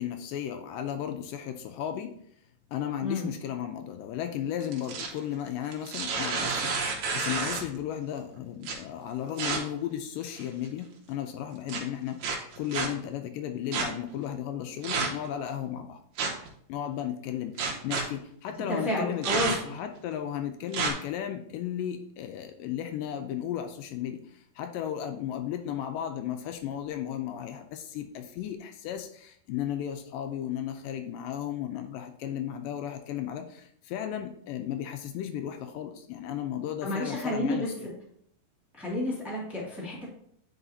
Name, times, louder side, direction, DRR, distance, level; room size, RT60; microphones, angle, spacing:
voice 1, 0.0-2.1 2.7-16.0 16.7-37.9, left 10 dB, 80° left, 6 dB, 2.1 m, -35 dB
sound 1, 4.6-5.2 5.7-7.8 8.6-8.7 9.4-9.6 10.3-10.7 11.7-11.8 12.2-12.9 13.7-13.9 14.8-15.3 16.2-16.5 17.6-18.0 19.2-19.8 20.7-20.9, right 4 dB, 65° right, 2.2 m, -30 dB
voice 2, 18.7-19.7 36.8-37.7 38.7-40.0, left 1 dB, ahead, -6 dB, 1.3 m, -30 dB
9.7 x 4.8 x 2.7 m, 0.66 s
omnidirectional pair, 4.0 m